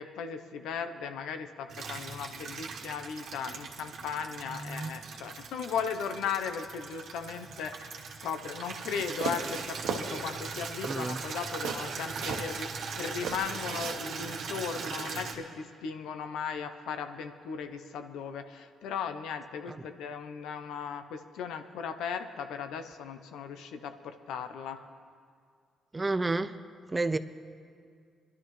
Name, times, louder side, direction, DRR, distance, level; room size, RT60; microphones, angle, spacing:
voice 1, 0.0-24.8, left 6 dB, 85° left, 9 dB, 0.7 m, -37 dB
Water tap faucet / Liquid, 1.7-15.3, right 5 dB, 65° right, 1.5 m, -40 dB
voice 2, 4.6-4.9 10.9-11.2 25.9-26.6 26.9-27.2, right 3 dB, 20° right, 13 dB, 0.5 m, -30 dB
sound 1, 8.9-10.1 10.5-10.6 10.8-12.6 12.9-14.9, right 7 dB, 85° right, 1.1 m, -37 dB
21.0 x 12.0 x 3.2 m, 2.2 s
cardioid pair, 90°, 0 cm